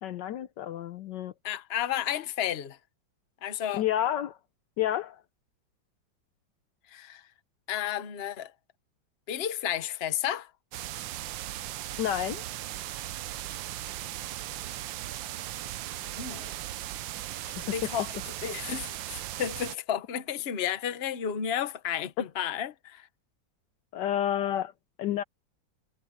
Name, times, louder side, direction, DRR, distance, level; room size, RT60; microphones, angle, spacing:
voice 1, 0.0-1.3 3.7-4.4 4.8-5.2 12.0-12.4 23.9-24.7 25.0-25.2, left 11 dB, 70° left, 1.2 m, -29 dB
voice 2, 1.4-2.8 3.4-3.8 6.9-7.2 7.7-8.5 9.3-10.5 16.1-16.6 17.6-18.1 18.4-23.1, left 9 dB, 40° left, 1.0 m, -32 dB
sound 1, 10.7-19.8, right 14 dB, 75° right, 1.4 m, -37 dB
omnidirectional pair, 2.1 m